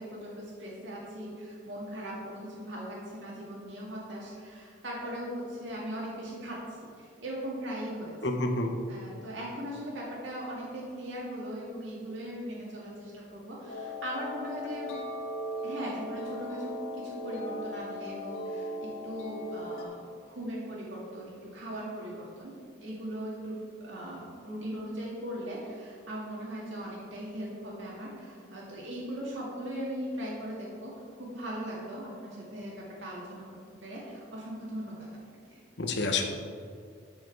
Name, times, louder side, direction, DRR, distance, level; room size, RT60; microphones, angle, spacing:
voice 1, 0.0-8.1 8.9-14.9 15.6-20.0 20.3-33.5 33.8-35.1 35.5-35.6, equal, 65° right, -5 dB, 2.1 m, -39 dB
voice 2, 8.2-8.7 35.8-36.3, left 2 dB, 55° left, 4 dB, 1.1 m, -28 dB
sound 1, 13.7-19.8, left 1 dB, 90° left, 1.5 m, -38 dB
13.5 x 5.3 x 4.7 m, 2.2 s
head